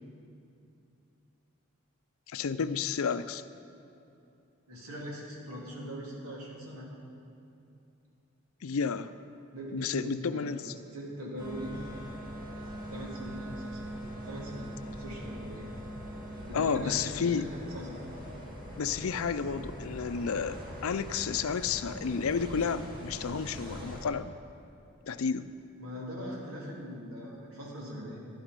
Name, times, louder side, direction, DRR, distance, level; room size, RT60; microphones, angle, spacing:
voice 1, 2.3-3.4 8.6-9.1 9.7-10.8 16.5-17.5 18.7-24.3 25.1-25.5, left 6 dB, 75° left, 13 dB, 0.5 m, -31 dB
voice 2, 4.7-6.9 9.5-12.1 12.9-14.0 14.2-15.7 16.4-18.1 25.8-28.2, equal, 85° right, -4 dB, 3.2 m, -41 dB
Wind instrument woodwind instrument, 11.4-16.5, right 1 dB, 15° right, 1.1 m, -43 dB
sound 1, 11.4-24.0, equal, 40° right, 2.1 m, -44 dB
12.5 x 12.0 x 5.3 m, 2.7 s
head